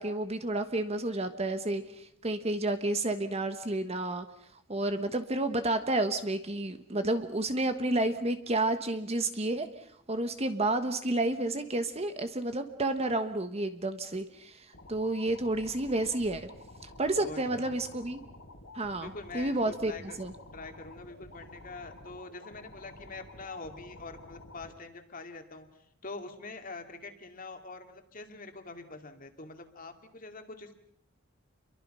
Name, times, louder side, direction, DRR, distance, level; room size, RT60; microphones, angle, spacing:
voice 1, 0.0-4.3 4.7-9.7 10.1-16.5 16.8-18.2 18.7-19.9 20.2-20.3, right 2 dB, 30° right, 8 dB, 1.3 m, -30 dB
sound 1, 14.7-24.7, left 2 dB, 85° left, 4.0 m, -50 dB
voice 2, 17.2-17.8 18.9-20.2 20.5-30.8, left 3 dB, 45° left, 6 dB, 2.5 m, -45 dB
29.5 x 23.0 x 5.6 m, 0.70 s
head